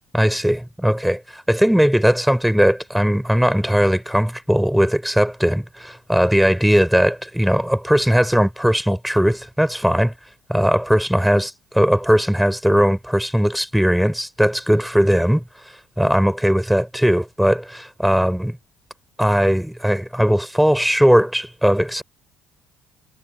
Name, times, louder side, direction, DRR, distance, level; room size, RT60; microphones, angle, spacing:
voice 1, 0.1-10.1 10.5-15.4 16.0-18.6 19.2-22.0, equal, ahead, 5.8 m, -18 dB
hypercardioid pair, 65°, 0 cm